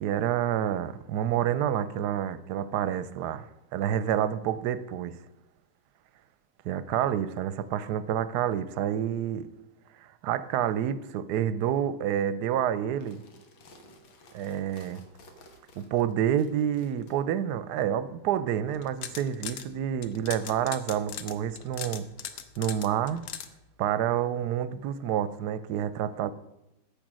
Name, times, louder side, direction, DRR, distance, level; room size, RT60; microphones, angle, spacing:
voice 1, 0.0-3.5 3.7-5.2 6.6-9.5 10.2-13.2 14.3-15.0 15.8-22.1 22.6-23.2 23.8-26.3, right 10 dB, 70° right, 1.0 m, -28 dB
sound 1, 12.9-17.2, left 1 dB, 85° left, 2.2 m, -54 dB
sound 2, 18.7-19.7 20.0-23.5, left 9 dB, 65° left, 1.2 m, -38 dB
10.0 x 7.3 x 6.3 m
omnidirectional pair, 2.1 m